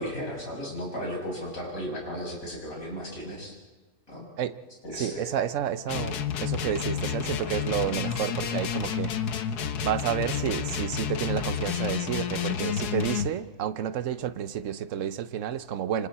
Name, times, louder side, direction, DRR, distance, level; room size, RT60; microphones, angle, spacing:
voice 1, 0.0-3.5 4.1-4.2 4.8-5.3, equal, 60° left, -2 dB, 6.9 m, -35 dB
voice 2, 4.9-9.1 9.8-16.1, right 9 dB, 60° right, 12 dB, 1.1 m, -30 dB
sound 1, 5.9-13.3, left 8 dB, 80° left, 1.5 m, -30 dB
27.5 x 25.5 x 4.3 m, 1.3 s
omnidirectional pair, 1.7 m